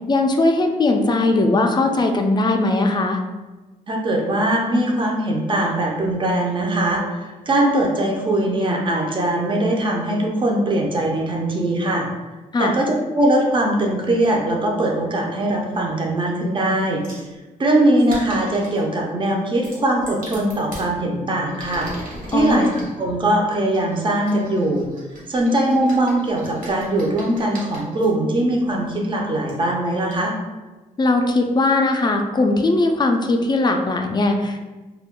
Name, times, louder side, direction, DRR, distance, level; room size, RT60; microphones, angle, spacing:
voice 1, 0.1-3.2 12.5-12.7 22.3-22.7 31.0-34.6, left 2 dB, 30° left, 4 dB, 0.3 m, -19 dB
voice 2, 3.9-7.0 7.5-12.1 12.6-17.0 17.6-21.9 22.3-24.9 25.3-30.4, right 1 dB, 35° right, 0 dB, 0.5 m, -21 dB
sound 1, 17.0-17.3 18.0-18.8 19.5-20.9 21.4-22.9 23.7-28.1 28.9-29.0 29.5-29.6 30.1-30.2, right 1 dB, 70° right, 1.2 m, -39 dB
2.2 x 2.1 x 3.6 m, 1.2 s
cardioid pair, 100°, 15 cm